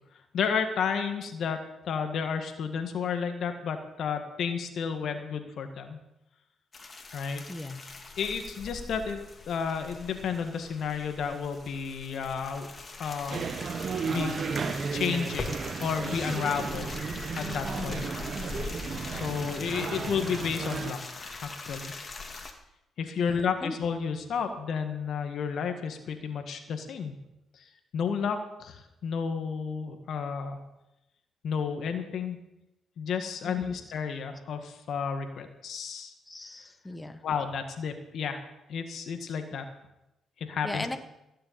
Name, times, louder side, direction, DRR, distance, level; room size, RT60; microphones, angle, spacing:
voice 1, 0.3-1.6 1.8-6.0 7.1-7.4 8.2-12.7 13.0-13.5 14.1-14.4 14.9-15.5 15.8-16.9 17.4-18.1 19.1-21.9 23.0-27.2 27.5-27.7 27.9-30.6 31.4-32.4 33.0-36.1 37.2-38.4 38.7-39.7 40.4-40.9, left 6 dB, 70° left, 6 dB, 1.8 m, -32 dB
sound 1, 6.7-22.5, left 3 dB, 40° left, 2.5 m, -42 dB
voice 2, 7.5-7.8 17.7-18.1 19.2-19.6 23.1-23.8 33.4-33.8 36.3-37.2 40.6-41.0, left 2 dB, 15° left, 7 dB, 1.5 m, -38 dB
sound 2, 13.3-20.9, right 5 dB, 50° right, 1.1 m, -34 dB
16.5 x 6.8 x 8.8 m, 0.89 s
supercardioid pair, 65°, 0 cm